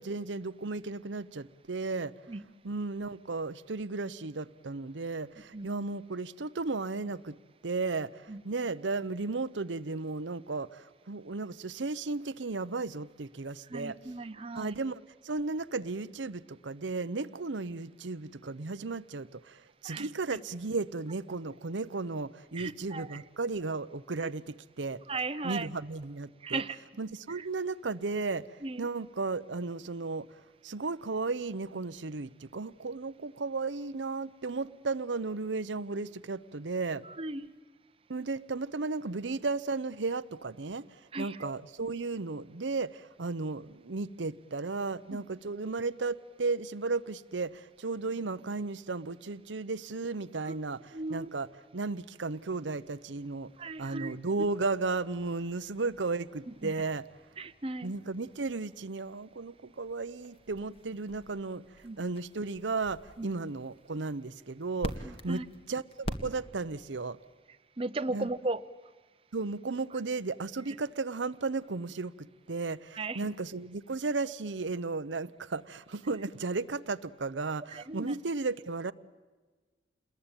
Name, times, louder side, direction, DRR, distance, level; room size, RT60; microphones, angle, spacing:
voice 1, 0.0-2.1 2.6-7.4 7.6-14.0 14.5-25.0 25.4-26.6 27.0-37.0 38.1-51.5 51.7-53.5 53.8-57.0 57.8-65.4 65.7-67.2 68.1-68.3 69.3-78.9, right 3 dB, 90° right, 0.8 m, -35 dB
voice 2, 13.7-14.8 19.8-20.1 22.5-23.2 24.2-24.3 25.1-25.7 26.4-26.8 27.3-27.5 28.6-28.9 37.0-37.5 41.1-41.5 45.1-45.2 50.4-50.6 50.9-51.3 53.6-54.2 56.6-56.7 57.4-57.9 61.8-62.0 63.2-63.3 65.0-65.5 67.8-68.6 72.9-73.2 77.7-78.1, right 3 dB, 30° right, 0.9 m, -36 dB
sound 1, 52.5-66.9, equal, 30° left, 1.8 m, -47 dB
28.5 x 21.0 x 9.0 m
head